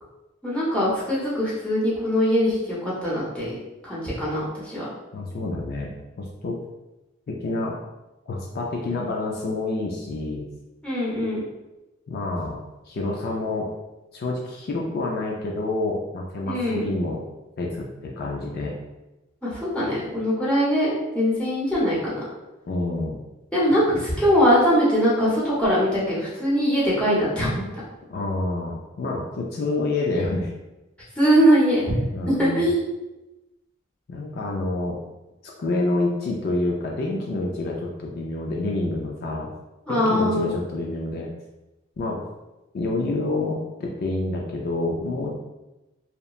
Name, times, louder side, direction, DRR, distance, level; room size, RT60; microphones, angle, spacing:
voice 1, 0.4-3.5 3.8-4.9 10.8-11.4 16.5-16.8 19.4-22.2 23.5-27.5 31.2-31.8 32.3-32.8 39.9-40.5, equal, 5° left, -8 dB, 0.8 m, -21 dB
voice 2, 5.1-5.9 6.2-6.6 7.3-7.8 8.3-10.5 12.1-12.6 12.9-13.7 14.1-17.2 17.6-18.7 22.7-23.2 23.7-24.0 28.1-30.5 32.1-32.6 34.1-35.0 35.6-39.5 39.9-41.3 42.0-42.2 42.7-45.4, left 2 dB, 50° left, -1 dB, 0.3 m, -28 dB
2.8 x 2.1 x 2.3 m, 1.0 s
head